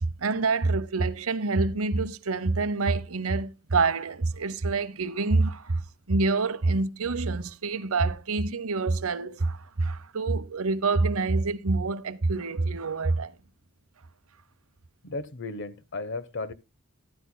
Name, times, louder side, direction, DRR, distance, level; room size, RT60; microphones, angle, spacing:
voice 1, 0.0-5.8 6.1-13.3, right 3 dB, 70° right, 0.9 m, -26 dB
voice 2, 15.0-16.5, left 3 dB, 55° left, 1.0 m, -35 dB
14.0 x 12.5 x 2.2 m
head